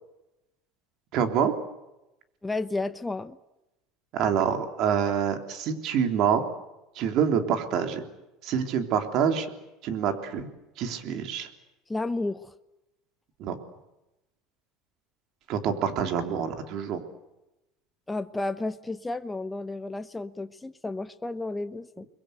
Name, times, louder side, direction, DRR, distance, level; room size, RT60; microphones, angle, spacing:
voice 1, 1.1-1.5 4.1-6.4 7.0-8.0 8.4-9.5 9.8-10.5 10.8-11.5 13.4-13.6 15.5-17.0, right 7 dB, 55° right, 6 dB, 3.4 m, -26 dB
voice 2, 2.4-3.4 11.9-12.5 18.1-22.0, left 2 dB, 10° left, 11 dB, 0.9 m, -32 dB
29.5 x 22.0 x 8.1 m, 0.96 s
supercardioid pair, 110°, 0 cm